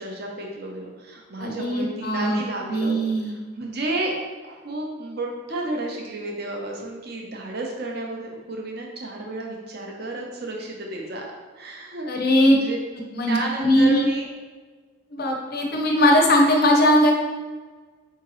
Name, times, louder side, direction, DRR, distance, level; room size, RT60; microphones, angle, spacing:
voice 1, 0.0-4.1 4.4-11.2 11.6-12.1 12.4-12.8 13.3-14.3, right 2 dB, 50° right, 0 dB, 0.6 m, -32 dB
voice 2, 1.4-2.4 2.7-3.3 12.1-12.6 13.1-14.1 15.1-17.1, equal, 45° left, 1 dB, 0.6 m, -19 dB
4.7 x 2.8 x 3.0 m, 1.4 s
head